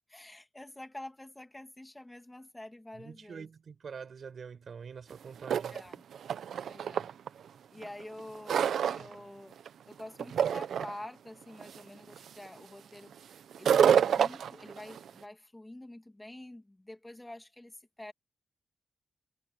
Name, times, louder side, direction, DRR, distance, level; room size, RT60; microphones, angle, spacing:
voice 1, 0.1-3.5 5.7-6.0 6.7-7.1 7.7-13.2 13.6-18.1, left 1 dB, 15° left, 2.5 m, -47 dB
voice 2, 2.9-5.8, right 6 dB, 65° right, 4.7 m, -45 dB
sound 1, 5.1-5.2 5.4-7.3 7.8-9.2 9.5-9.9 10.2-11.0 11.6-11.8 12.2-12.5 13.5-15.1, right 8 dB, 85° right, 0.7 m, -27 dB
cardioid pair, 60°, 0 cm